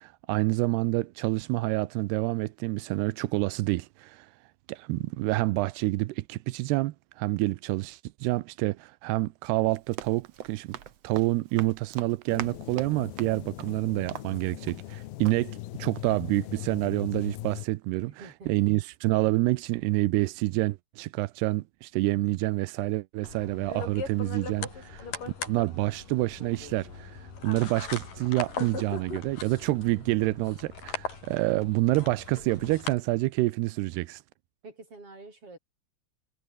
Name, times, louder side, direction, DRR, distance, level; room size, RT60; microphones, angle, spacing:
voice 1, 0.0-4.3 4.7-10.8 11.0-25.1 25.5-34.2, right 20 dB, 90° right, 2.8 m, -28 dB
Run, 9.7-15.0 15.2-15.4, right 10 dB, 55° right, 1.9 m, -43 dB
sound 1, 12.3-17.7, left 16 dB, 75° left, 2.6 m, -40 dB
voice 2, 18.0-18.5 34.6-35.6, right 3 dB, 35° right, 8.8 m, -47 dB
sound 2, 23.2-32.9, left 5 dB, 55° left, 6.9 m, -39 dB
omnidirectional pair, 4.6 m